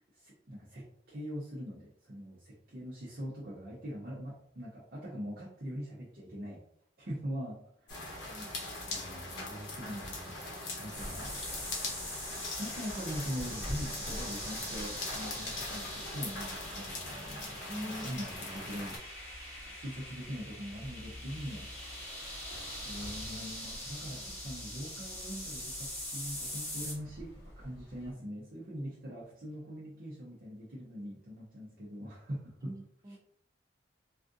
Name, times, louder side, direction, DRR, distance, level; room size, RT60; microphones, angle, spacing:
voice 1, 0.1-6.6 7.0-8.0 8.9-10.4 10.8-11.3 12.6-19.0 19.7-22.1 22.8-32.7 33.1-33.2, equal, 55° right, -7 dB, 0.7 m, -42 dB
sound 1, 7.9-19.0, left 2 dB, 85° left, 0.8 m, -41 dB
sound 2, 10.9-28.1, equal, 50° left, 1.3 m, -49 dB
sound 3, 10.9-26.9, left 1 dB, 10° left, 1.1 m, -43 dB
voice 2, 17.7-18.1 24.1-24.2 32.6-33.2, equal, 20° right, 1 dB, 0.4 m, -43 dB
3.4 x 2.5 x 2.6 m, 0.69 s
head